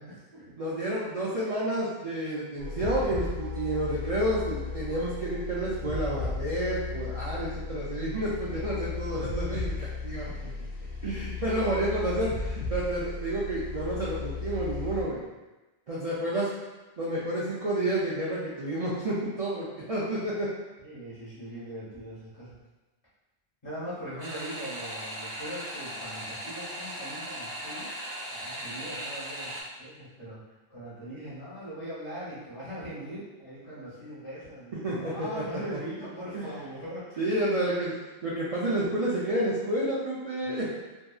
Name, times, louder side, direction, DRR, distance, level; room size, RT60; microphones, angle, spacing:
voice 1, 0.0-0.6 10.1-10.9 20.8-22.6 23.6-27.9 28.3-30.4 30.7-37.2 40.4-40.7, equal, 25° left, -10 dB, 0.8 m, -41 dB
voice 2, 0.6-10.3 11.0-15.2 15.9-16.5 17.0-20.5 34.8-35.4 36.3-36.4 37.2-38.0 38.2-40.7, right 1 dB, 70° right, -8 dB, 0.3 m, -30 dB
sound 1, 2.6-15.0, left 4 dB, 60° left, 0.6 m, -35 dB
sound 2, 24.2-29.6, right 1 dB, 45° right, 0.8 m, -38 dB
2.7 x 2.5 x 2.3 m, 1.1 s
omnidirectional pair, 1.2 m